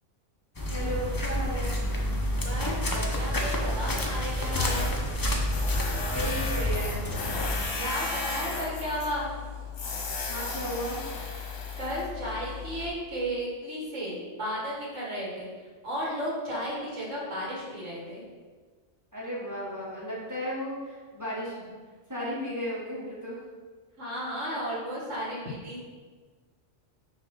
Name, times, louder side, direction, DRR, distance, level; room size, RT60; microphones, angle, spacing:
sound 1, 0.6-7.6, left 1 dB, 25° left, 0.6 m, -29 dB
voice 1, 0.7-1.8 6.1-7.1 10.3-11.0 19.1-21.7 22.1-23.4, equal, 15° right, -8 dB, 1.6 m, -34 dB
voice 2, 2.4-4.9 7.7-9.3 11.4-11.5 11.8-15.5 15.8-18.2 24.0-25.8, equal, 85° right, -5 dB, 1.9 m, -34 dB
Tools, 4.7-12.9, left 4 dB, 75° left, 1.3 m, -35 dB
5.9 x 3.1 x 5.6 m, 1.4 s
omnidirectional pair, 1.3 m